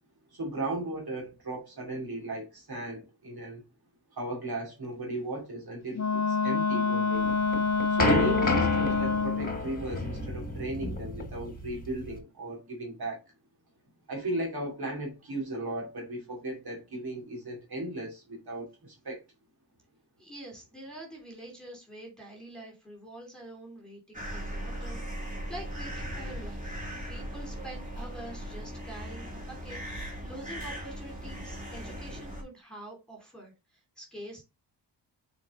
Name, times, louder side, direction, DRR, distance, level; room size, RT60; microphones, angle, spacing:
voice 1, 0.3-3.6 4.1-7.3 7.9-13.2 14.1-19.2, right 1 dB, 55° right, 2.8 m, -36 dB
Wind instrument woodwind instrument, 5.9-9.6, left 5 dB, 35° left, 0.7 m, -27 dB
sound 1, 7.2-12.2, left 2 dB, 20° left, 1.7 m, -30 dB
voice 2, 20.2-25.0 25.5-26.7 27.0-34.4, right 1 dB, ahead, 3.0 m, -46 dB
sound 2, 24.1-32.4, equal, 15° right, 2.6 m, -38 dB
6.8 x 4.4 x 3.7 m
wide cardioid pair, 125°, 45 cm